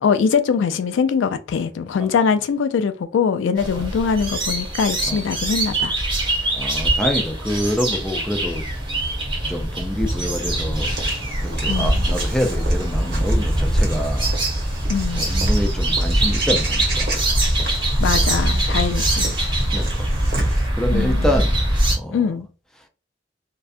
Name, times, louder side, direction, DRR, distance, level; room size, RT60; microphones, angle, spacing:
voice 1, 0.0-6.0 11.7-12.1 14.9-15.3 18.0-19.4 20.9-21.3 22.1-22.5, left 6 dB, 85° left, 0.3 m, -22 dB
sound 1, 3.6-21.9, right 1 dB, 25° right, 0.8 m, -22 dB
voice 2, 6.5-8.6 9.0-9.1 9.5-11.0 11.4-14.3 15.1-17.4 19.7-20.1 20.4-21.6 21.9-22.2, equal, 5° left, 0.4 m, -26 dB
Walk footsteps / Bird vocalization bird call bird song, 10.7-20.7, right 2 dB, 55° right, 0.9 m, -33 dB
2.6 x 2.2 x 2.4 m
head